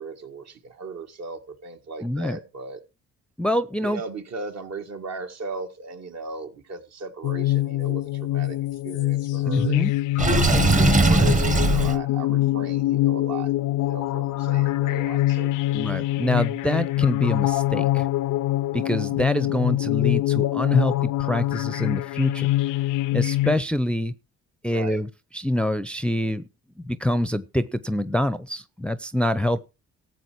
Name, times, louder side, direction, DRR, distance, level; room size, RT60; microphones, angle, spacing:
voice 1, 0.0-2.8 3.8-8.6 8.8-9.9 10.5-13.5 13.8-15.9 24.7-25.0, right 3 dB, 60° right, 1.9 m, -37 dB
voice 2, 2.0-2.4 3.4-4.0 9.5-9.9 15.7-18.1 18.7-22.5 23.1-24.1 24.6-25.1 25.3-26.4 26.8-29.6, left 1 dB, 5° left, 0.6 m, -25 dB
sound 1, 7.2-23.6, left 16 dB, 85° left, 0.5 m, -24 dB
Water / Sink (filling or washing), 10.2-12.0, right 3 dB, 25° right, 1.1 m, -19 dB
14.0 x 7.8 x 4.6 m
cardioid pair, 90°, 30 cm